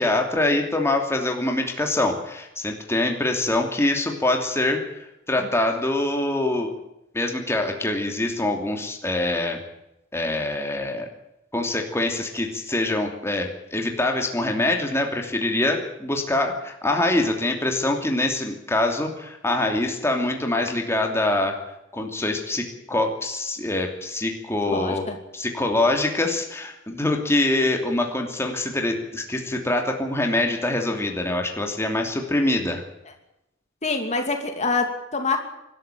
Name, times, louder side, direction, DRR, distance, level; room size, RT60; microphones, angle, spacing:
voice 1, 0.0-4.8 5.3-6.7 7.1-9.6 10.1-11.1 11.5-21.6 21.9-25.0 25.3-32.8, left 2 dB, 15° left, 2 dB, 2.8 m, -24 dB
voice 2, 24.7-25.2 33.8-35.4, left 3 dB, 35° left, 5 dB, 2.7 m, -25 dB
25.0 x 12.5 x 9.2 m, 0.88 s
head